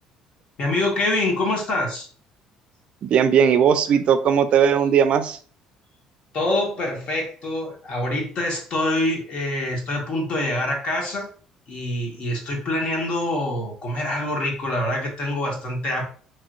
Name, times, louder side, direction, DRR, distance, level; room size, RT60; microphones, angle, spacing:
voice 1, 0.6-2.1 6.3-11.3 11.7-16.0, left 1 dB, 55° left, 0 dB, 1.3 m, -25 dB
voice 2, 3.0-5.4, right 7 dB, 55° right, 11 dB, 0.4 m, -18 dB
3.2 x 2.7 x 2.5 m, 0.43 s
supercardioid pair, 90°, 2 cm